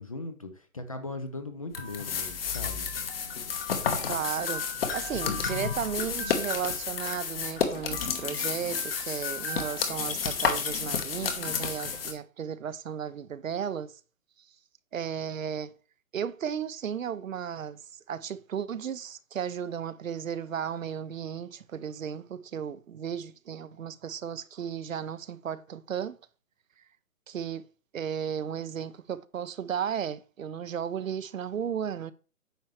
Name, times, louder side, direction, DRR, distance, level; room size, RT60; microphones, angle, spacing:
voice 1, 0.0-2.9, left 2 dB, 25° left, 0.5 m, -39 dB
sound 1, 1.7-12.1, left 6 dB, 40° left, 1.3 m, -31 dB
voice 2, 4.1-4.6 4.9-14.0 14.9-15.7 16.1-17.8 18.1-26.2 27.3-27.7 27.9-32.1, right 8 dB, 65° right, 0.7 m, -34 dB
9.1 x 5.5 x 3.2 m
hypercardioid pair, 150°, 42 cm